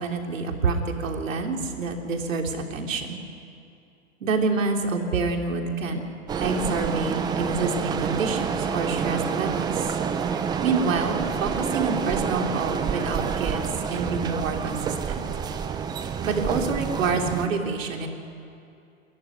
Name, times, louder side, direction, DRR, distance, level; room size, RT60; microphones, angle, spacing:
voice 1, 0.0-3.2 4.2-6.0 6.4-9.9 10.6-13.6 13.9-14.8 15.1-15.2 16.2-18.1, right 4 dB, 70° right, 3 dB, 3.3 m, -27 dB
sound 1, 6.3-17.5, right 6 dB, 10° right, 0.7 m, -28 dB
28.5 x 14.0 x 9.8 m, 2.5 s
hypercardioid pair, 140°, 40 cm